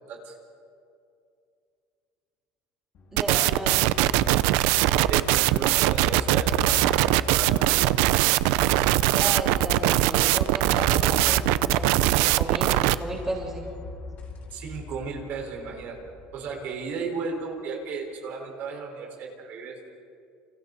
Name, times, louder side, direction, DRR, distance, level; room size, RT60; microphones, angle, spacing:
sound 1, 2.9-17.5, left 4 dB, 45° left, 4.2 m, -38 dB
voice 1, 3.1-4.0 9.0-13.7, right 1 dB, 10° right, -3 dB, 3.9 m, -34 dB
sound 2, 3.2-13.0, right 17 dB, 75° right, 0.6 m, -21 dB
voice 2, 5.1-8.1 14.5-16.0 16.3-19.7, right 5 dB, 55° right, 1 dB, 4.6 m, -35 dB
29.5 x 26.0 x 4.1 m, 2.4 s
cardioid pair, 140°, 4 cm